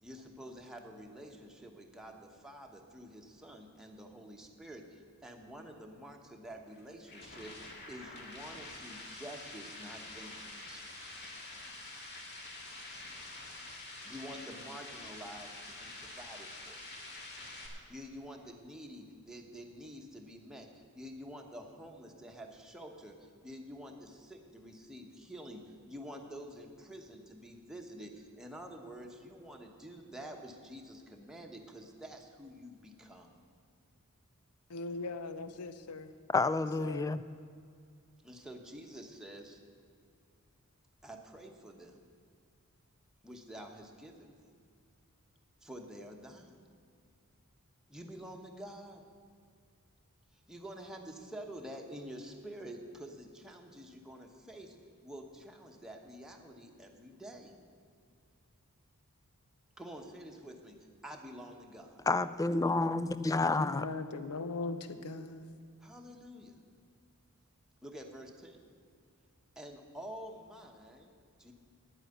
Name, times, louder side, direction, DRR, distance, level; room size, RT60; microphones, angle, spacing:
voice 1, 0.0-10.9 14.0-16.8 17.9-33.3 38.2-39.6 41.0-42.0 43.2-44.4 45.6-46.6 47.9-49.0 50.5-54.8 55.0-57.6 59.8-60.8 61.0-62.0 65.8-66.5 67.8-68.6 69.6-71.5, equal, 5° right, 1.1 m, -48 dB
sound 1, 6.7-17.7, left 2 dB, 50° left, 2.0 m, -47 dB
voice 2, 34.7-36.0 36.8-37.1 63.6-65.6, left 3 dB, 90° left, 0.7 m, -40 dB
voice 3, 36.3-37.2 62.1-63.9, left 3 dB, 15° left, 0.3 m, -29 dB
10.0 x 9.0 x 8.1 m
head